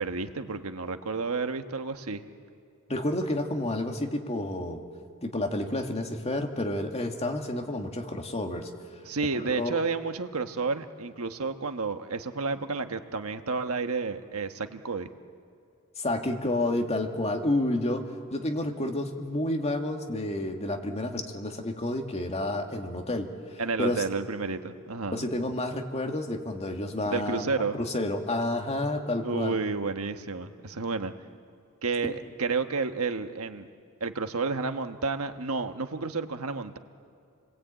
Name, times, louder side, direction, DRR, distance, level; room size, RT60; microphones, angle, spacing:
voice 1, 0.0-2.2 9.0-15.1 23.6-25.3 27.1-27.8 29.2-31.1 31.8-33.7 34.0-36.8, right 4 dB, 80° right, 7 dB, 1.3 m, -31 dB
voice 2, 2.9-4.8 5.2-8.7 9.3-9.8 16.0-18.0 18.3-24.0 25.1-27.5 27.7-29.6 32.0-32.1, left 1 dB, 30° left, 3 dB, 2.1 m, -30 dB
29.5 x 21.0 x 8.9 m, 2.4 s
head